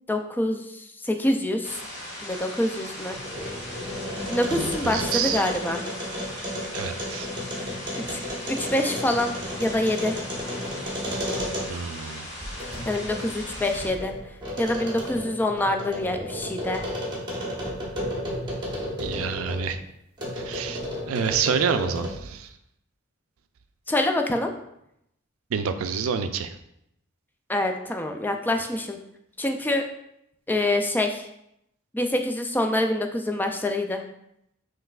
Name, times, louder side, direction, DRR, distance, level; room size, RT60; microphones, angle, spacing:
voice 1, 0.1-1.8 2.2-3.2 4.3-5.8 8.1-8.2 8.5-9.3 9.6-10.2 12.9-14.1 14.6-16.8 23.9-24.5 27.5-29.0 29.4-29.8 30.5-31.3 31.9-34.0, left 1 dB, 10° left, 4 dB, 0.3 m, -25 dB
sound 1, 1.6-13.9, left 1 dB, 35° left, 1.4 m, -39 dB
sound 2, 3.0-11.9 12.4-19.7 20.2-22.3, equal, 20° right, 1.1 m, -33 dB
voice 2, 4.5-5.5 6.7-7.3 11.7-12.3 19.0-19.8 20.3-22.5 25.5-26.5, right 6 dB, 75° right, 9 dB, 0.4 m, -28 dB
5.5 x 3.2 x 2.4 m, 0.78 s
head